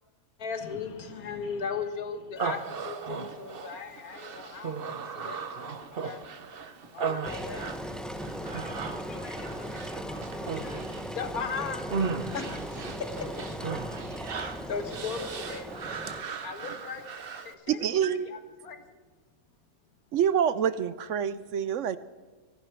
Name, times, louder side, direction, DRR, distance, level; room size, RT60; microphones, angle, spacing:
voice 1, 0.4-6.2 6.8-8.0 11.0-15.8 16.4-17.1 17.4-18.8, left 5 dB, 90° left, 8 dB, 1.9 m, -38 dB
Human voice, 2.4-17.5, right 5 dB, 45° right, 1.1 m, -37 dB
Engine, 7.2-16.2, equal, ahead, 0.5 m, -38 dB
voice 2, 8.4-10.8, left 2 dB, 70° left, 2 dB, 3.3 m, -49 dB
voice 3, 17.7-18.3 20.1-22.0, right 8 dB, 65° right, 15 dB, 0.9 m, -26 dB
24.5 x 12.0 x 4.6 m, 1.4 s
omnidirectional pair, 1.5 m